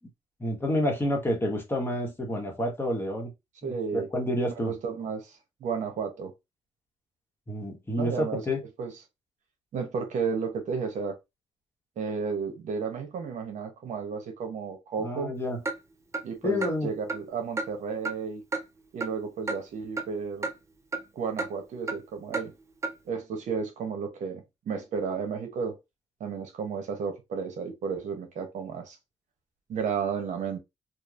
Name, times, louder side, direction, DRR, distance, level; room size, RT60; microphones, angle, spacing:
voice 1, 0.4-3.3 3.6-4.7 7.5-8.6 15.0-15.6 16.4-16.9, left 1 dB, 15° left, 1.2 m, -29 dB
voice 2, 3.6-4.1 4.6-6.3 8.0-8.4 8.8-8.9 9.7-11.2 12.0-15.3 16.2-18.4 18.9-20.5 21.1-22.5 23.1-25.8 26.2-29.0 29.7-30.6, right 5 dB, 70° right, 0.8 m, -33 dB
Clock, 15.7-15.8 16.1-16.2 16.6-16.7 17.1-17.2 17.6-17.7 18.0-18.2 18.5-18.6 19.0-19.1 19.5-19.6 20.0-20.1 20.4-20.5 20.9-21.0 21.4-21.5 21.9-22.0 22.3-22.5 22.8-22.9, right 3 dB, 20° right, 0.5 m, -31 dB
3.0 x 2.3 x 2.5 m
cardioid pair, 90°, 13 cm